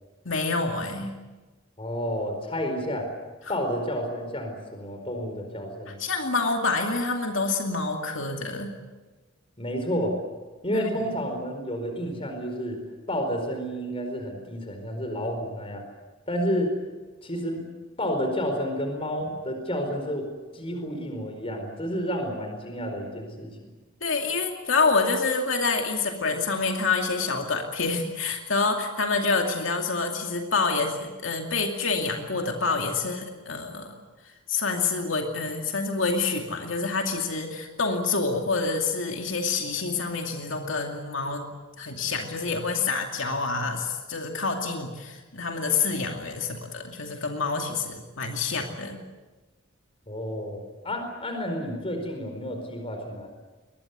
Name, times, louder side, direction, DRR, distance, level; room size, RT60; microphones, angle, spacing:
voice 1, 0.2-1.1 5.9-8.7 10.7-11.1 24.0-33.9 34.5-41.5 41.8-49.0, left 4 dB, 75° left, 3 dB, 2.6 m, -27 dB
voice 2, 1.8-3.1 3.5-6.0 9.6-10.2 10.6-15.9 16.3-16.7 17.2-17.6 18.0-20.3 20.5-23.6 50.1-53.3, equal, 30° left, 4 dB, 4.6 m, -30 dB
22.0 x 20.5 x 9.5 m, 1.2 s
head